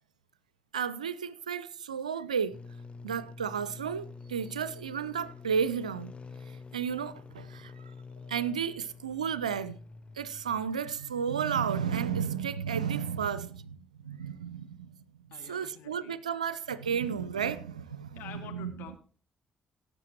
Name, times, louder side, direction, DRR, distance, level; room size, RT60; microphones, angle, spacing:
voice 1, 0.7-2.6 3.0-6.1 6.7-7.7 8.3-9.8 10.2-15.0 15.5-18.7, right 7 dB, 85° right, 0.4 m, -32 dB
sound 1, 2.5-11.2, left 4 dB, 30° left, 0.7 m, -47 dB
voice 2, 15.3-16.2 18.1-19.0, left 9 dB, 65° left, 1.2 m, -48 dB
17.5 x 7.9 x 3.0 m
figure-of-eight pair, 40°, 4 cm